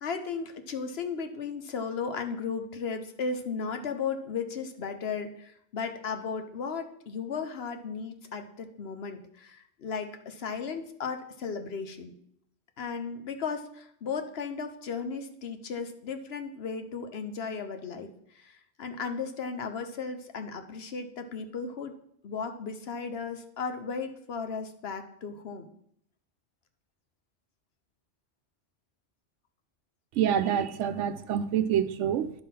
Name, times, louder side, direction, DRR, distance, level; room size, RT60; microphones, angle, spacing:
voice 1, 0.0-12.1 12.8-21.9 22.2-25.7, left 5 dB, 60° left, 7 dB, 1.0 m, -35 dB
voice 2, 30.1-32.3, right 9 dB, 85° right, 12 dB, 0.9 m, -27 dB
11.0 x 3.7 x 5.8 m, 0.71 s
omnidirectional pair, 1.2 m